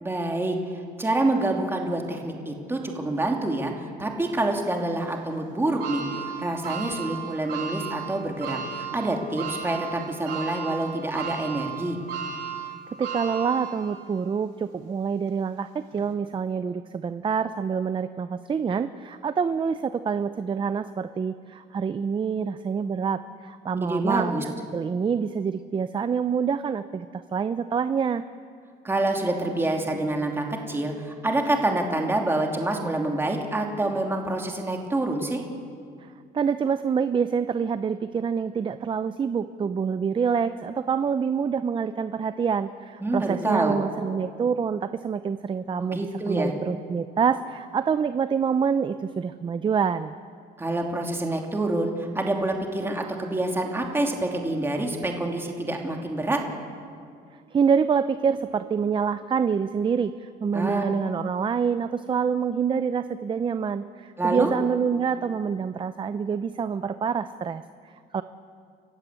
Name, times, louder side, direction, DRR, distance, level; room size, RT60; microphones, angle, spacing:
voice 1, 0.0-0.6 1.0-12.0 23.8-24.4 28.8-35.4 43.0-43.8 45.8-46.5 50.6-56.4 60.5-60.8 64.2-64.5, right 2 dB, 15° right, 1 dB, 2.9 m, -27 dB
sound 1, 5.8-14.2 14.7-14.8 15.9-16.0, right 7 dB, 75° right, 3.2 m, -35 dB
voice 2, 13.0-24.4 24.7-28.2 36.3-50.1 57.5-68.2, right 6 dB, 30° right, 12 dB, 0.7 m, -26 dB
30.0 x 15.0 x 8.3 m, 2.2 s
cardioid pair, 110°, 17 cm